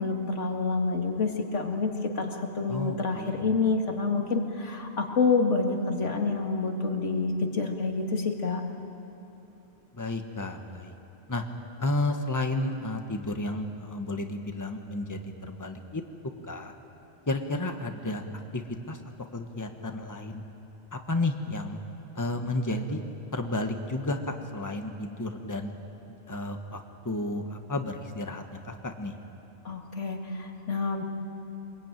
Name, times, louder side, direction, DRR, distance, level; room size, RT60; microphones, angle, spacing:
voice 1, 0.0-8.6 29.6-31.0, left 4 dB, 90° left, 3 dB, 2.4 m, -28 dB
voice 2, 2.7-3.4 9.9-10.9 11.3-11.4 11.8-16.0 16.5-16.7 17.3-18.2 18.5-18.6 18.9-19.0 19.3-20.4 20.9-21.8 22.1-23.0 23.3-25.7 26.3-26.8 27.0-29.1, left 2 dB, 15° left, 5 dB, 1.4 m, -32 dB
24.5 x 21.5 x 9.2 m, 2.9 s
omnidirectional pair, 1.2 m